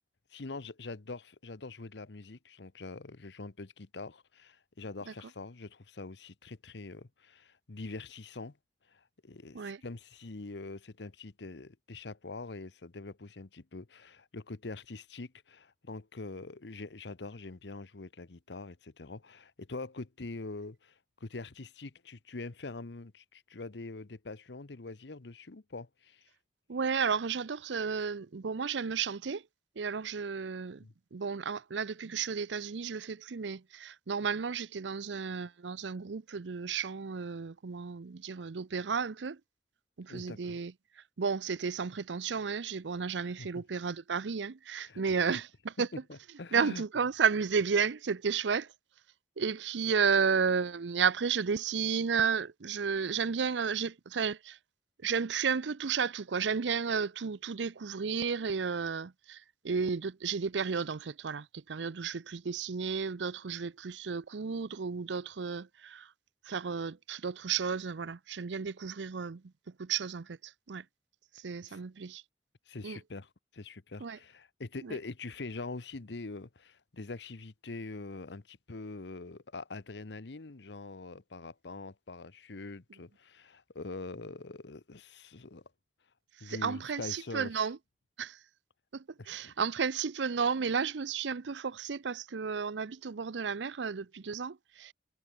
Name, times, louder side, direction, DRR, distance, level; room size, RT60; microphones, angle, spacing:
voice 1, 0.3-8.6 8.9-26.3 30.8-30.9 40.1-40.6 43.4-43.6 44.8-45.0 45.3-45.4 45.9-46.8 71.6-71.8 72.7-85.6 86.4-87.7 89.2-89.5, left 3 dB, 70° left, 1.0 m, -44 dB
voice 2, 26.7-29.4 29.8-30.8 31.1-39.4 40.0-40.7 41.2-45.9 46.5-48.7 49.4-54.6 55.0-66.1 66.5-69.4 69.8-70.8 71.3-72.2 72.8-73.0 74.0-74.2 74.8-75.0 86.4-87.8 88.2-88.4 88.9-94.9, right 6 dB, 85° right, 0.6 m, -33 dB
head